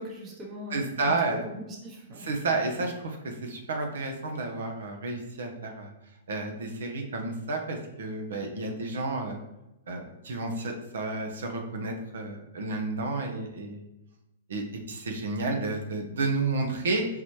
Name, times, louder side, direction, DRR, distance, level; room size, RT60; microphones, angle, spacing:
voice 1, 0.0-2.3, left 1 dB, 20° right, -2 dB, 0.9 m, -41 dB
voice 2, 0.7-1.4 2.2-5.9 6.3-9.4 9.9-13.8 14.5-17.1, right 3 dB, 80° right, 3 dB, 0.9 m, -31 dB
4.3 x 3.9 x 3.2 m, 0.90 s
hypercardioid pair, 165°, 0 cm